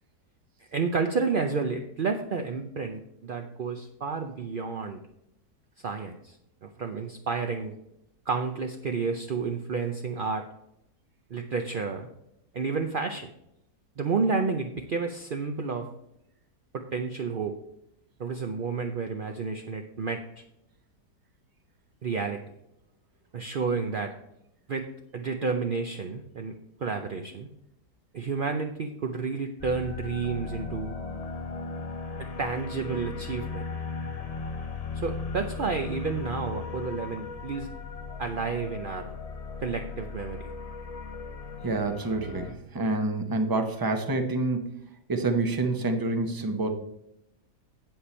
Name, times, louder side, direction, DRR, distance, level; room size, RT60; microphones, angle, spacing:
voice 1, 0.7-5.0 5.8-6.4 6.6-7.7 8.3-10.4 11.3-12.1 12.5-13.3 14.0-15.9 16.7-17.6 18.2-20.4 22.0-22.4 23.3-24.1 24.7-24.9 25.1-27.5 28.1-31.0 32.2-33.7 35.0-37.7 38.2-39.1 39.6-40.5, right 4 dB, 60° right, 5 dB, 0.5 m, -30 dB
sound 1, 29.6-42.5, left 4 dB, 35° left, 0.6 m, -37 dB
voice 2, 41.6-44.8 45.1-46.7, right 2 dB, 20° right, 5 dB, 0.6 m, -27 dB
8.4 x 7.7 x 4.3 m, 0.81 s
omnidirectional pair, 1.7 m